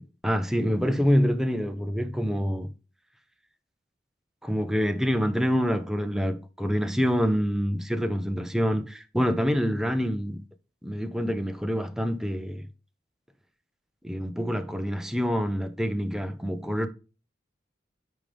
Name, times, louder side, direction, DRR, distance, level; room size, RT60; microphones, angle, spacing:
voice 1, 0.0-2.7 4.4-10.4 10.8-12.6 14.0-16.9, equal, 5° right, 0.7 m, -26 dB
8.9 x 5.1 x 3.4 m
head